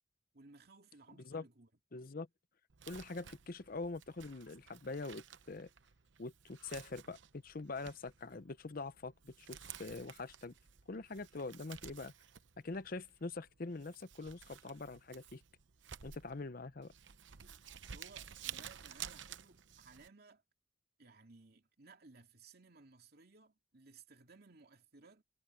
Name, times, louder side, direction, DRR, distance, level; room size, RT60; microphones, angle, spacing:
voice 1, 0.3-1.7 17.9-20.4 21.0-25.2, right 3 dB, 55° right, 2.5 m, -60 dB
voice 2, 1.9-2.3 2.9-5.7 6.2-10.5 10.9-12.1 12.6-15.4 16.0-16.9, left 3 dB, 50° left, 0.7 m, -44 dB
Crumpling crinkling, 2.7-20.1, right 9 dB, 75° right, 0.9 m, -53 dB
head